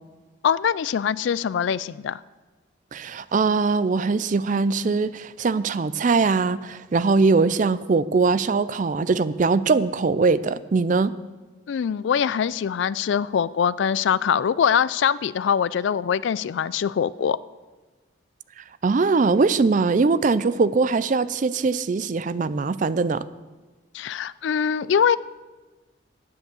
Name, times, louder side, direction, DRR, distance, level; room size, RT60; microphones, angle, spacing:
voice 1, 0.4-2.2 11.7-17.4 23.9-25.2, left 7 dB, 65° left, 19 dB, 0.3 m, -23 dB
voice 2, 2.9-11.2 18.6-23.2, right 4 dB, 40° right, 16 dB, 0.4 m, -21 dB
10.5 x 9.7 x 7.0 m, 1.3 s
head